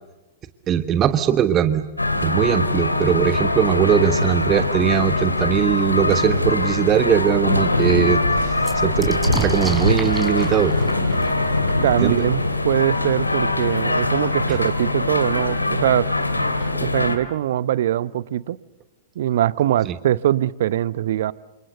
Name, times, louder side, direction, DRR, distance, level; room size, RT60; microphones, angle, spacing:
voice 1, 0.7-1.8 2.2-10.7 12.0-12.2 19.8-19.9, right 9 dB, 25° right, 10 dB, 1.2 m, -20 dB
sound 1, 2.0-17.2, left 2 dB, 85° left, 2.4 m, -22 dB
sound 2, 8.2-13.1 14.0-14.1 14.4-15.0, right 3 dB, 10° right, 4.6 m, -32 dB
voice 2, 11.8-16.1 16.8-18.6 19.2-21.3, right 12 dB, 55° right, 18 dB, 0.8 m, -22 dB
29.0 x 27.5 x 6.7 m, 1.1 s
figure-of-eight pair, 105°, 0 cm